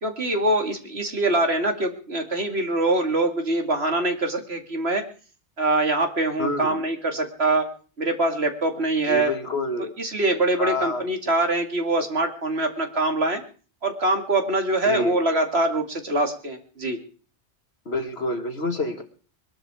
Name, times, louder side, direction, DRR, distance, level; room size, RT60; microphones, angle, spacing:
voice 1, 0.0-5.0 5.6-7.7 8.0-9.3 10.0-13.4 13.8-17.0, right 2 dB, 65° right, 5 dB, 2.9 m, -24 dB
voice 2, 6.4-6.8 9.0-9.9 10.6-11.0 14.8-15.2 17.9-19.0, left 2 dB, 65° left, 6 dB, 2.5 m, -27 dB
22.0 x 12.5 x 4.9 m, 0.40 s
omnidirectional pair, 1.1 m